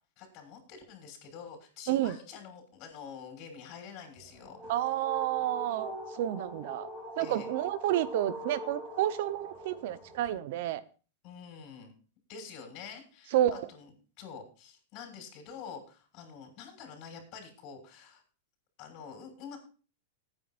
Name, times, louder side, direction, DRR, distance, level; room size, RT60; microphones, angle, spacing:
voice 1, 0.2-4.6 7.2-7.5 11.2-11.9 12.3-13.4 13.7-13.9 14.2-18.2 18.8-19.6, left 6 dB, 40° left, 3 dB, 6.1 m, -47 dB
sound 1, 4.2-10.3, equal, ahead, 5.6 m, -43 dB
voice 2, 4.7-6.9 7.2-10.8 13.3-13.7, right 12 dB, 55° right, 15 dB, 0.9 m, -30 dB
20.0 x 9.7 x 2.6 m, 0.36 s
supercardioid pair, 155°, 0 cm